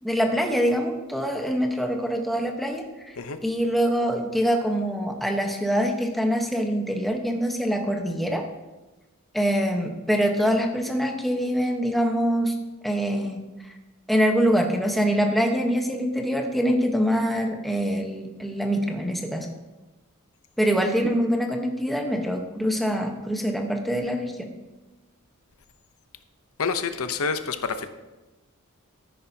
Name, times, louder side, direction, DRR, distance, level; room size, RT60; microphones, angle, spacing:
voice 1, 0.0-2.9 3.4-8.4 9.3-12.5 12.8-13.4 14.1-19.5 20.6-24.5, equal, ahead, 2 dB, 1.1 m, -24 dB
voice 2, 26.6-27.9, left 5 dB, 70° left, 10 dB, 0.8 m, -28 dB
13.5 x 10.0 x 2.8 m, 1.1 s
head